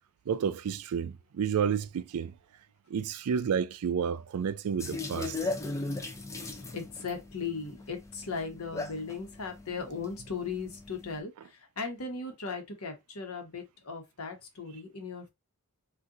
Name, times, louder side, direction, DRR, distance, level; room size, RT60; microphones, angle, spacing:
voice 1, 0.3-2.3 2.9-5.4, right 7 dB, 85° right, 0.4 m, -30 dB
sound 1, 4.8-11.2, left 3 dB, 15° left, 0.5 m, -38 dB
voice 2, 6.7-15.3, left 4 dB, 70° left, 1.1 m, -37 dB
2.6 x 2.5 x 3.7 m
head